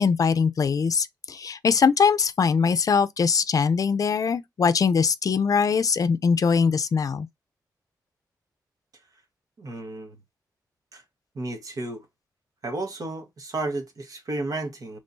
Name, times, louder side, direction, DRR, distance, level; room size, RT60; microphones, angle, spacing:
voice 1, 0.0-7.3, left 5 dB, 55° left, 0.5 m, -22 dB
voice 2, 9.6-10.1 10.9-11.0 11.3-12.0 12.6-15.0, right 2 dB, 55° right, 1.4 m, -32 dB
5.4 x 3.2 x 2.6 m
wide cardioid pair, 110°, 7 cm